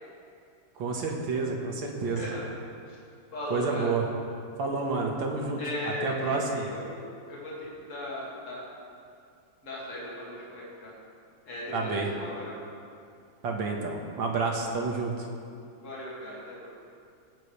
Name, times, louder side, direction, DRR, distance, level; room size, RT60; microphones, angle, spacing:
voice 1, 0.8-2.3 3.5-4.0 4.6-6.6 11.7-12.1 13.4-15.3, right 4 dB, 75° right, 0 dB, 2.2 m, -29 dB
voice 2, 2.0-2.4 2.9-3.0 3.3-3.9 5.6-7.5 7.9-8.7 9.6-10.9 11.5-12.5 15.8-16.7, left 1 dB, 40° left, -6 dB, 2.6 m, -37 dB
18.5 x 10.0 x 3.3 m, 2.4 s
omnidirectional pair, 2.1 m